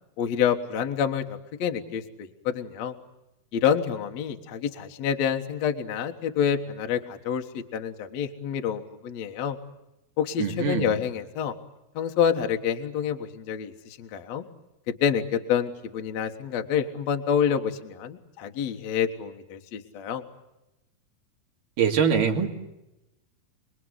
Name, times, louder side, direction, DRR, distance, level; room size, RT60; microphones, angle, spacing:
voice 1, 0.2-3.0 3.5-9.6 10.2-11.5 12.0-14.4 15.0-20.2, left 8 dB, 55° left, 5 dB, 2.3 m, -27 dB
voice 2, 10.4-11.0 21.8-22.5, right 6 dB, 60° right, 2 dB, 3.9 m, -23 dB
28.5 x 20.5 x 9.8 m, 0.95 s
omnidirectional pair, 4.4 m